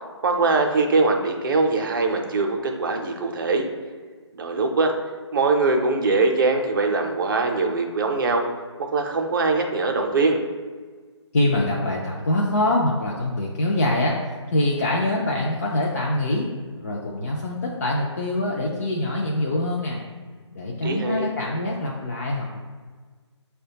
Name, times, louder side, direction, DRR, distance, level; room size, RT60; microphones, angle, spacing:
voice 1, 0.2-3.7 4.3-4.9 5.3-8.4 8.8-10.4 20.8-21.3, right 3 dB, 45° right, 3 dB, 0.5 m, -22 dB
voice 2, 11.3-14.2 14.5-16.5 16.8-20.0 20.6-22.6, left 1 dB, 30° left, -3 dB, 0.3 m, -24 dB
6.2 x 2.2 x 2.7 m, 1.5 s
figure-of-eight pair, 155°, 15 cm